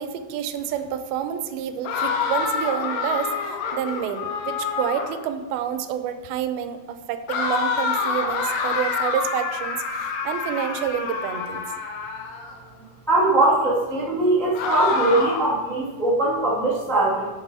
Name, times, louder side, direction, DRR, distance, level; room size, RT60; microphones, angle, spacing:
voice 1, 0.0-11.6, right 9 dB, 85° right, 10 dB, 2.4 m, -29 dB
sound 1, 1.8-5.2 7.3-12.6 14.5-15.6, left 5 dB, 75° left, 2.3 m, -27 dB
voice 2, 13.1-17.3, right 2 dB, ahead, -7 dB, 0.6 m, -21 dB
6.7 x 6.5 x 4.8 m, 1.3 s
omnidirectional pair, 4.2 m